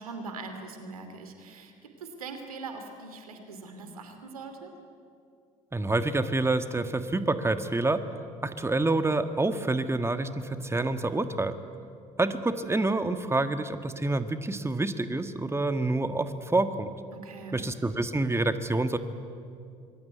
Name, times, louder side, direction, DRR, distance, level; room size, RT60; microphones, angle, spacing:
voice 1, 0.0-4.7 17.1-17.7, right 4 dB, 90° right, 6 dB, 2.7 m, -42 dB
voice 2, 5.7-8.0 8.4-11.6 12.2-16.9 17.5-19.0, right 2 dB, 15° right, 9 dB, 1.7 m, -27 dB
26.5 x 22.0 x 9.4 m, 2.4 s
hypercardioid pair, 55°, 18 cm